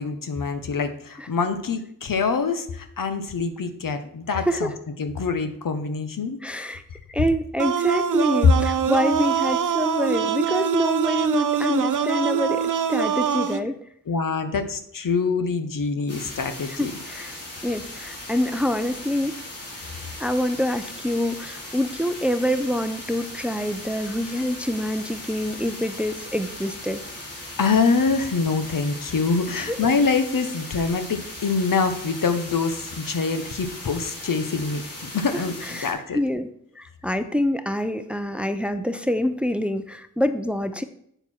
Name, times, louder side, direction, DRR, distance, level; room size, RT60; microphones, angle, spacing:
voice 1, 0.0-4.7 5.0-6.4 14.1-16.9 27.6-34.8 35.1-36.2, left 4 dB, 65° left, 8 dB, 1.1 m, -25 dB
voice 2, 4.3-4.7 6.4-6.8 7.1-13.8 16.8-19.4 20.2-27.0 29.7-29.8 35.6-36.5 36.8-40.8, equal, 5° right, 10 dB, 0.6 m, -26 dB
sound 1, 7.6-13.6, right 8 dB, 60° right, 0.7 m, -24 dB
sound 2, 16.1-35.9, left 1 dB, 45° left, 2.7 m, -38 dB
8.0 x 6.7 x 4.4 m, 0.70 s
cardioid pair, 50°, 35 cm